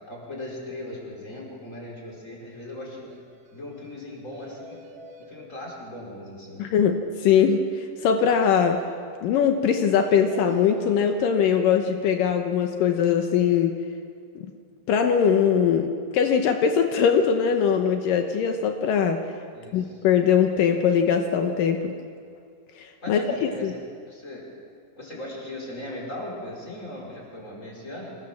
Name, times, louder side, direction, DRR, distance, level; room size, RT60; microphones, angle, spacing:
voice 1, 0.1-3.1 3.5-4.8 5.2-6.7 19.5-20.0 23.0-23.7 24.1-24.5 25.0-28.2, left 1 dB, 15° left, -3 dB, 4.8 m, -38 dB
sound 1, 3.1-3.2 3.5-3.6 3.8-3.9 4.3-5.3 10.0-11.0, equal, 45° right, 3.1 m, -46 dB
voice 2, 6.6-8.8 9.2-13.8 14.9-15.9 16.1-19.2 19.7-22.0 22.8-23.7, left 7 dB, 80° left, 5 dB, 1.9 m, -21 dB
26.0 x 17.5 x 7.3 m, 2.2 s
omnidirectional pair, 5.4 m